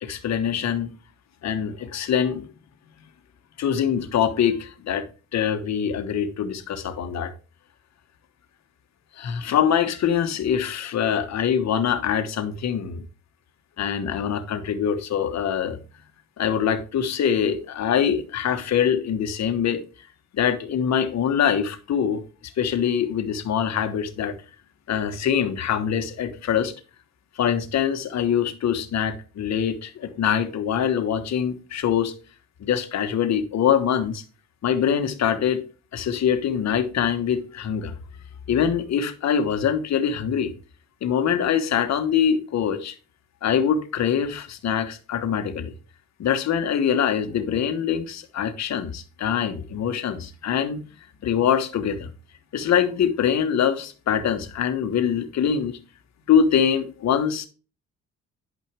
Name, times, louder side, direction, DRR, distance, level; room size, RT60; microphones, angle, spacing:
voice 1, 0.0-0.9 1.4-2.5 3.6-5.1 5.3-7.3 9.2-13.0 13.8-15.8 16.4-19.8 20.3-22.2 22.6-24.4 24.9-26.7 27.4-32.1 32.6-34.2 34.6-35.6 35.9-37.9 38.5-40.5 41.0-42.9 43.4-45.7 46.2-50.8 51.2-52.1 52.5-55.8 56.3-57.5, left 8 dB, 60° left, 1.3 m, -24 dB
10.0 x 5.6 x 3.4 m
cardioid pair, 90°, 30 cm